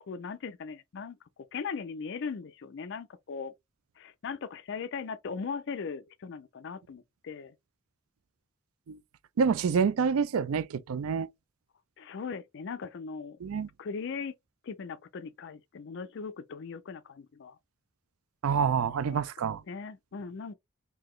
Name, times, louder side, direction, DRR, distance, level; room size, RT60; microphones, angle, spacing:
voice 1, 0.1-1.2 1.5-3.5 4.0-7.5 12.0-13.4 13.8-14.4 14.6-17.6 19.1-19.2 19.7-20.5, left 5 dB, 55° left, 0.4 m, -39 dB
voice 2, 9.4-11.3 13.4-13.7 18.4-19.6, right 6 dB, 85° right, 0.4 m, -27 dB
3.8 x 2.8 x 3.1 m
head